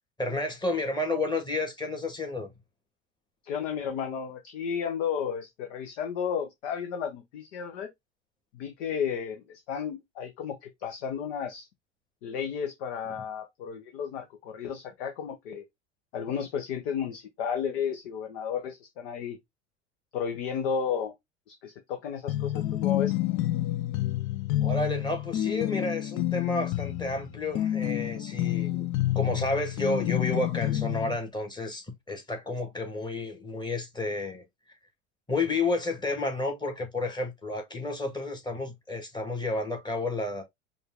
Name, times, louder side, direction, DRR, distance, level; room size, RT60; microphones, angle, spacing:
voice 1, 0.2-2.5 24.6-28.9 29.1-34.4 35.3-40.4, left 2 dB, 10° left, 1.9 m, -31 dB
voice 2, 3.4-7.9 8.5-11.7 12.2-15.6 16.1-19.4 20.1-21.1 21.5-23.2, left 7 dB, 60° left, 1.0 m, -33 dB
sound 1, 22.3-31.2, left 14 dB, 40° left, 0.5 m, -29 dB
5.3 x 2.6 x 3.7 m
figure-of-eight pair, 75°, 36 cm